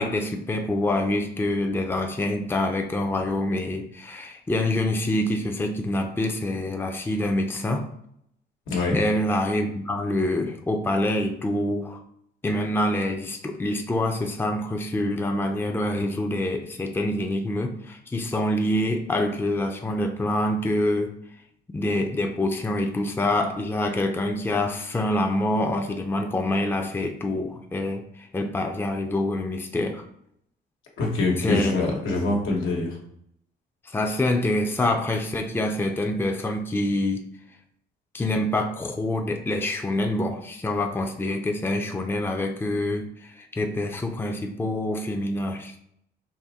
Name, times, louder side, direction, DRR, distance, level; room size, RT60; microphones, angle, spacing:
voice 1, 0.0-7.9 8.9-12.0 12.4-21.1 21.7-30.1 31.4-31.8 33.8-37.3 38.1-45.8, left 1 dB, 10° left, 4 dB, 0.5 m, -26 dB
voice 2, 8.7-9.0 31.0-33.0, left 2 dB, 80° left, -1 dB, 1.3 m, -24 dB
4.2 x 2.6 x 3.6 m, 0.71 s
cardioid pair, 90°, 20 cm